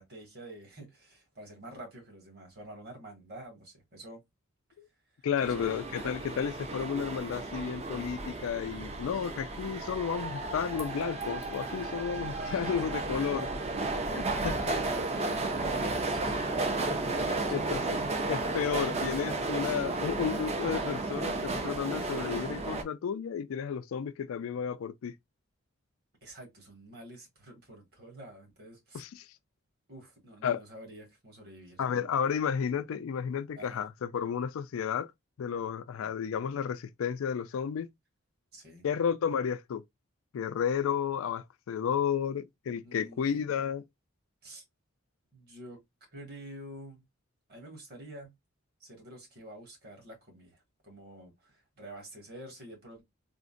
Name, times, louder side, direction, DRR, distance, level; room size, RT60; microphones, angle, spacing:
voice 1, 0.0-4.2 5.4-6.4 12.3-13.0 14.0-18.1 18.4-19.0 26.2-29.0 29.9-31.8 33.5-33.8 36.0-36.1 38.5-38.9 42.8-43.2 44.4-44.6 45.3-45.8 46.1-47.0 47.5-48.3 48.8-53.0, right 1 dB, 50° right, 1.6 m, -48 dB
voice 2, 5.2-13.5 14.1-14.5 17.5-18.0 18.3-25.1 28.9-29.3 30.4-30.6 31.8-35.1 35.4-37.9 38.8-39.8 40.3-43.8, left 7 dB, 75° left, 0.3 m, -32 dB
sound 1, 5.4-22.8, right 2 dB, 30° right, 0.5 m, -33 dB
3.7 x 2.1 x 2.5 m
head